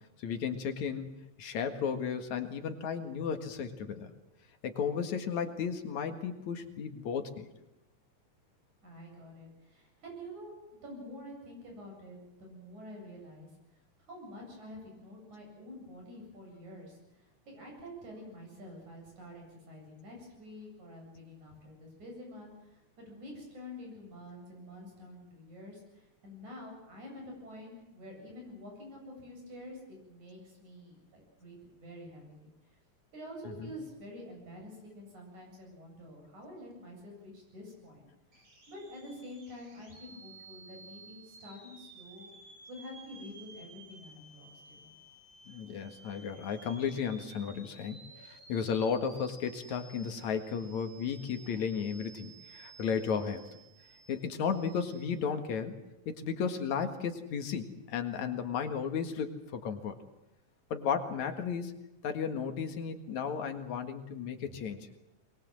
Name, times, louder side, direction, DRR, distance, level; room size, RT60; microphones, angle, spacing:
voice 1, 0.2-1.1 1.4-4.1 4.6-7.5 33.4-33.8 45.5-53.4 54.1-55.8 56.1-60.0 60.7-61.8 62.0-64.9, left 6 dB, 75° left, 7 dB, 3.1 m, -34 dB
voice 2, 8.8-13.5 14.1-32.5 33.1-38.1 38.7-42.3 42.7-44.9 64.4-64.6, left 1 dB, 80° right, 0 dB, 9.5 m, -48 dB
sound 1, 38.3-55.1, right 3 dB, 35° right, 5.0 m, -54 dB
22.5 x 22.0 x 7.7 m, 0.91 s
omnidirectional pair, 3.3 m